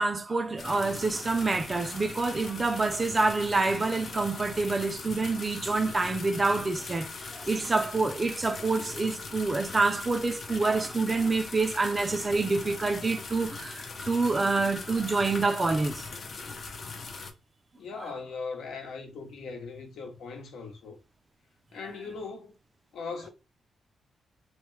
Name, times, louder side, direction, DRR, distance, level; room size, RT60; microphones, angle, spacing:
voice 1, 0.0-16.0 18.0-18.1, right 3 dB, 30° right, 0.4 m, -27 dB
sound 1, 0.6-17.3, left 4 dB, 50° left, 0.6 m, -40 dB
voice 2, 17.8-21.0 21.7-22.5 22.9-23.3, left 4 dB, 80° left, 0.9 m, -39 dB
3.1 x 2.1 x 3.1 m
cardioid pair, 100°, 0 cm